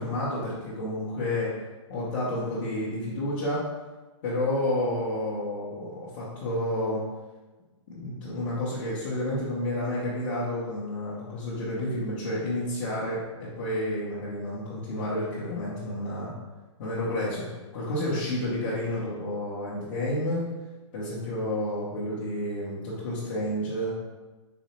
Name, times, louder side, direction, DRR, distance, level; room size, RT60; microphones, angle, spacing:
voice 1, 0.0-1.5 1.9-3.6 4.2-7.0 7.9-16.3 16.8-17.4 17.7-20.4 20.9-23.9, left 1 dB, 25° left, -10 dB, 0.6 m, -30 dB
4.1 x 2.1 x 2.8 m, 1.2 s
hypercardioid pair, 175°, 16 cm